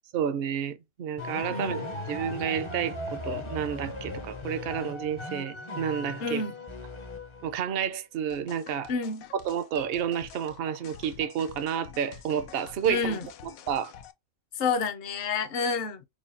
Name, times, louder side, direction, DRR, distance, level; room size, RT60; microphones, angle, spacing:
voice 1, 0.1-6.4 7.4-8.9 9.3-13.2 13.7-13.9, right 8 dB, 55° right, 0.7 m, -30 dB
sound 1, 1.2-7.7, left 2 dB, 30° left, 0.6 m, -37 dB
voice 2, 1.5-2.0 6.2-6.5 8.9-9.3 12.9-13.3 14.6-16.1, left 4 dB, 55° left, 0.8 m, -29 dB
sound 2, 8.3-14.1, left 8 dB, 80° left, 1.0 m, -48 dB
4.7 x 2.3 x 2.5 m
omnidirectional pair, 1.4 m